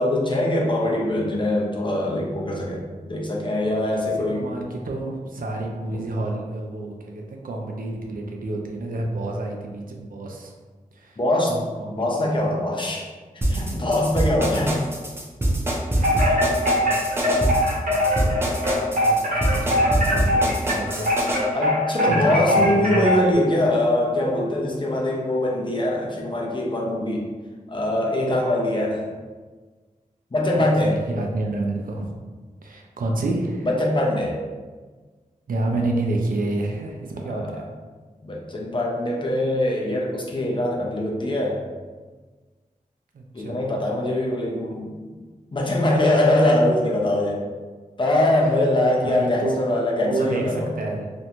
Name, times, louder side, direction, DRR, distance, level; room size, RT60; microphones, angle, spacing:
voice 1, 0.0-4.5 5.9-6.0 11.2-11.6 12.0-13.1 13.5-14.8 21.5-27.2 27.7-29.1 30.3-31.0 33.6-34.4 37.3-37.5 38.2-41.7 43.3-44.9 45.5-47.4 48.0-50.7, left 1 dB, 35° left, -2 dB, 0.5 m, -22 dB
voice 2, 4.3-10.5 10.9-11.2 11.5-12.5 14.5-14.7 16.0-21.6 22.0-23.2 30.6-32.1 32.6-33.7 35.5-37.7 43.1-43.6 49.0-49.6 50.0-51.1, right 2 dB, 80° right, 1 dB, 0.4 m, -30 dB
sound 1, 13.4-21.4, right 1 dB, 15° right, 0.5 m, -24 dB
Wind chime, 16.0-23.3, left 1 dB, 65° right, 1.0 m, -22 dB
2.5 x 2.2 x 2.9 m, 1.4 s
wide cardioid pair, 80°, 14 cm